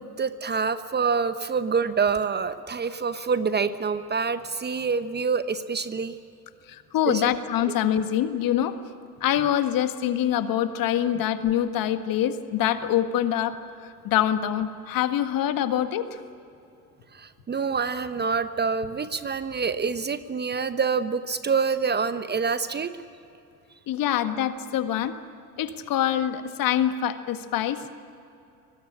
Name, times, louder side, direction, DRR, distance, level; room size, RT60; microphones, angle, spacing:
voice 1, 0.0-6.2 7.1-7.3 17.1-22.9, right 5 dB, 20° right, 12 dB, 0.9 m, -26 dB
voice 2, 6.7-8.8 9.2-13.6 14.0-16.1 23.9-25.1 25.6-27.8, left 11 dB, 45° left, 10 dB, 1.7 m, -25 dB
24.0 x 20.5 x 10.0 m, 2.7 s
hypercardioid pair, 70°, 47 cm